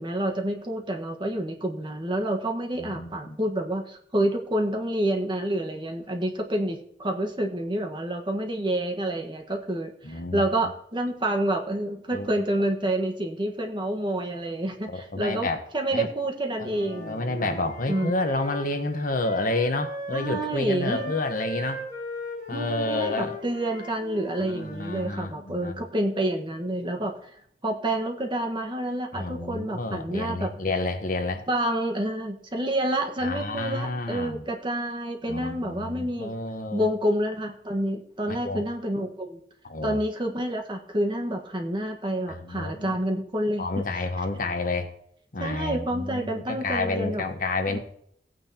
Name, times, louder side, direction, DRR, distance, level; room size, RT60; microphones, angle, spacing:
voice 1, 0.0-15.5 15.7-17.3 17.9-18.2 20.1-21.1 22.5-27.3 27.6-30.5 31.5-36.3 36.7-39.4 39.8-43.8 45.4-47.2 47.7-47.8, right 1 dB, 25° right, 3 dB, 1.5 m, -28 dB
voice 2, 2.8-3.4 10.0-10.4 12.1-12.4 14.9-15.6 15.9-16.1 16.6-21.8 22.5-23.3 24.4-25.8 29.1-31.4 33.2-34.4 35.3-36.9 38.3-38.6 39.6-40.0 42.3-42.9 43.6-44.9 45.3-47.8, left 2 dB, 50° left, 6 dB, 1.2 m, -30 dB
Wind instrument woodwind instrument, 16.6-20.5 20.8-25.1, equal, 20° left, 5.0 m, -39 dB
16.5 x 9.4 x 2.9 m, 0.67 s
head